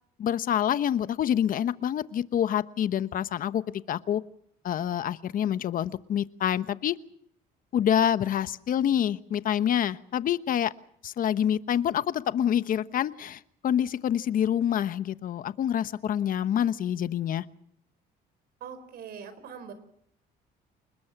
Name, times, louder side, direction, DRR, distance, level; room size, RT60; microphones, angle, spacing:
voice 1, 0.2-3.6 3.9-4.2 4.6-6.9 7.7-10.7 11.0-17.4, left 10 dB, 55° left, 14 dB, 1.1 m, -27 dB
voice 2, 18.6-19.7, right 7 dB, 65° right, 12 dB, 4.6 m, -42 dB
29.0 x 20.5 x 6.0 m, 0.69 s
cardioid pair, 110°, 17 cm